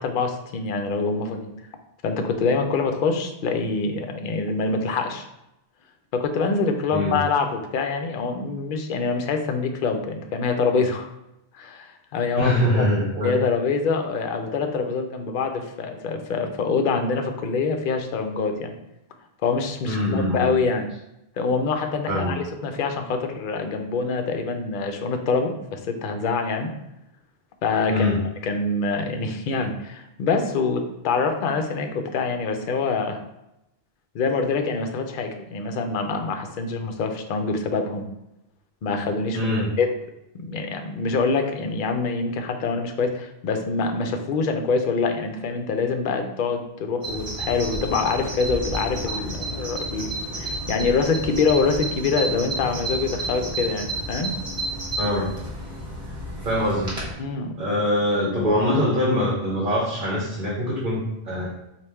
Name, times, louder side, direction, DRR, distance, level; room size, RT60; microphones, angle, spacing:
voice 1, 0.0-1.5 2.0-5.3 6.1-11.1 11.5-12.8 13.2-18.7 19.4-20.9 21.4-26.7 27.6-28.1 28.4-33.2 34.1-38.1 38.8-39.5 39.8-39.9 40.3-50.1 50.4-54.3 57.2-57.6, left 4 dB, 60° left, 5 dB, 0.6 m, -25 dB
voice 2, 6.9-7.2 12.4-13.4 19.9-20.5 22.1-22.4 27.9-28.2 39.3-39.7 49.1-49.2 55.0-55.3 56.4-56.9 57.6-61.5, left 1 dB, 50° right, -5 dB, 1.0 m, -23 dB
Bird vocalization bird call bird song, 47.0-57.1, right 1 dB, 35° right, 1.4 m, -31 dB
4.2 x 2.4 x 3.4 m, 0.87 s
omnidirectional pair, 1.1 m